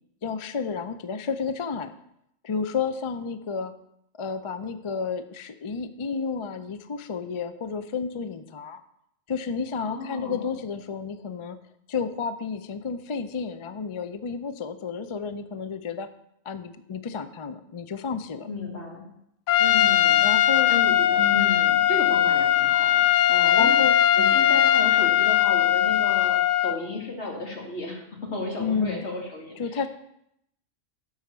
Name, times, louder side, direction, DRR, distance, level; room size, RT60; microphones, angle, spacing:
voice 1, 0.2-1.9 2.4-3.7 4.2-8.8 9.3-11.6 11.9-16.1 16.4-18.5 20.2-20.7 21.2-21.5 23.5-24.4 28.6-29.1 29.6-29.9, left 5 dB, 45° left, 10 dB, 0.4 m, -31 dB
voice 2, 9.8-10.5 18.5-19.1 19.6-20.3 20.7-23.8 24.2-29.9, left 3 dB, 65° left, 0 dB, 2.4 m, -34 dB
Trumpet, 19.5-26.8, left 11 dB, 80° left, 0.9 m, -20 dB
11.5 x 4.8 x 6.8 m, 0.76 s
omnidirectional pair, 1.2 m